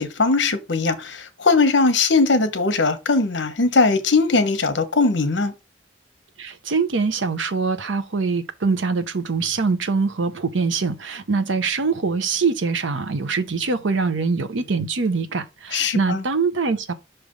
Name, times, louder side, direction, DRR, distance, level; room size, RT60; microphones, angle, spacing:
voice 1, 0.0-5.5 15.7-16.2, left 3 dB, 75° left, 1.0 m, -20 dB
voice 2, 6.4-16.9, right 4 dB, 85° right, 0.8 m, -23 dB
5.9 x 3.3 x 5.2 m
head